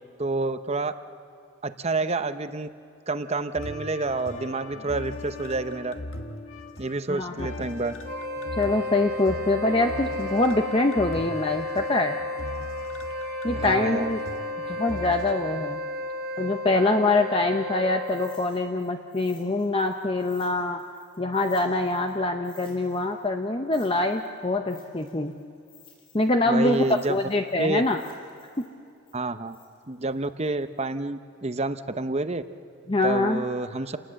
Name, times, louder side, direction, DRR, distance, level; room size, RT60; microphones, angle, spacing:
voice 1, 0.2-0.9 1.6-2.7 3.1-5.9 6.8-7.9 13.5-14.1 26.5-27.2 27.6-27.8 29.1-29.6 29.9-32.4 33.0-34.0, right 3 dB, 30° right, 10 dB, 0.8 m, -28 dB
sound 1, 3.6-15.3, left 2 dB, 65° left, 1.7 m, -38 dB
voice 2, 7.1-7.5 8.6-12.2 13.4-14.2 14.7-15.8 16.4-20.8 21.2-25.3 26.1-28.0 28.6-28.7 32.9-33.4, left 2 dB, 25° left, 5 dB, 0.7 m, -24 dB
Wind instrument woodwind instrument, 8.0-18.6, left 1 dB, 45° right, 1.4 m, -33 dB
sound 2, 18.0-22.2 22.4-26.4 26.7-30.8, left 8 dB, 85° left, 6.2 m, -56 dB
29.0 x 19.0 x 7.6 m, 2.6 s
head